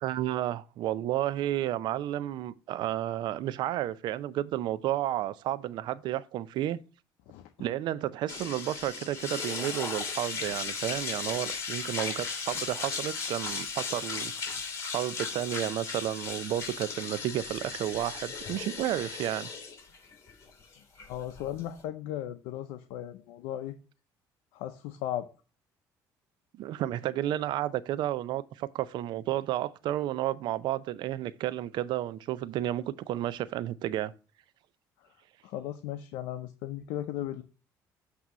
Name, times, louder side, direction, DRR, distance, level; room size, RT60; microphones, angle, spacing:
voice 1, 0.0-6.8 7.6-14.3 14.9-19.5 26.6-34.1, right 13 dB, 70° right, 0.5 m, -32 dB
voice 2, 7.3-7.7 21.1-23.8 24.5-25.3 35.4-37.4, left 12 dB, 90° left, 0.6 m, -36 dB
sound 1, 8.3-21.8, left 5 dB, 35° left, 2.7 m, -36 dB
8.1 x 2.9 x 6.1 m
cardioid pair, 95°, 8 cm